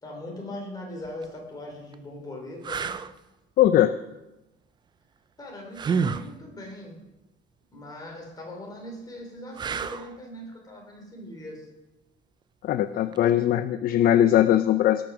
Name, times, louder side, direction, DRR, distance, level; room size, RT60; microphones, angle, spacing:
voice 1, 0.0-2.9 5.4-7.0 7.7-11.7, left 1 dB, 20° left, -1 dB, 3.1 m, -40 dB
sound 1, 1.0-1.2 1.9-2.0 2.6-3.1 5.7-6.3 9.5-10.2 13.1-13.3, right 5 dB, 20° right, 0.3 m, -29 dB
voice 2, 3.6-3.9 12.6-15.0, left 11 dB, 45° left, 12 dB, 0.4 m, -20 dB
18.0 x 6.2 x 6.0 m, 1.0 s
cardioid pair, 165°, 21 cm